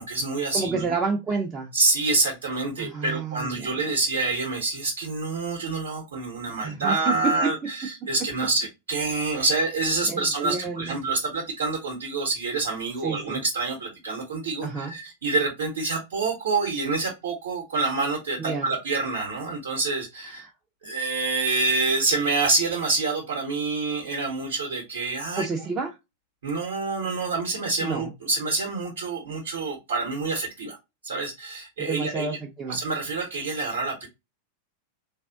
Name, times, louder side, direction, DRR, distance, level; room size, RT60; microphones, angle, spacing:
voice 1, 0.0-0.9 1.7-20.5 20.8-25.5 26.4-30.8 31.0-32.4 32.7-34.1, right 3 dB, 60° right, -1 dB, 0.8 m, -27 dB
voice 2, 0.5-1.7 2.8-3.7 6.6-7.2 8.0-8.1 9.3-9.4 10.1-11.0 13.0-13.4 14.6-14.9 18.4-18.6 20.3-20.5 25.4-25.9 27.8-28.1 31.8-32.8, right 4 dB, 20° right, -1 dB, 0.5 m, -30 dB
3.4 x 2.4 x 2.2 m, 0.23 s
figure-of-eight pair, 90°, 0 cm